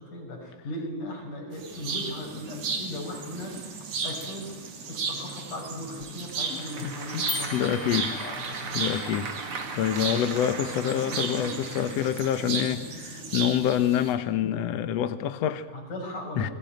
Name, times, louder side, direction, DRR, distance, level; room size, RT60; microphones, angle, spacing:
voice 1, 0.0-4.6 4.9-7.7 8.0-8.4 15.7-16.5, left 1 dB, 90° left, 1 dB, 7.6 m, -38 dB
sound 1, 1.5-14.1, right 4 dB, 70° right, 4.3 m, -35 dB
Applause / Crowd, 6.0-12.8, right 4 dB, 45° right, 3.3 m, -38 dB
voice 2, 6.5-7.3 7.5-8.1 8.7-9.3 9.7-15.7 16.4-16.5, left 10 dB, 65° left, 12 dB, 2.0 m, -27 dB
sound 2, 7.3-8.8, left 3 dB, 35° left, 0.5 m, -37 dB
29.0 x 21.5 x 9.2 m, 1.1 s
omnidirectional pair, 3.5 m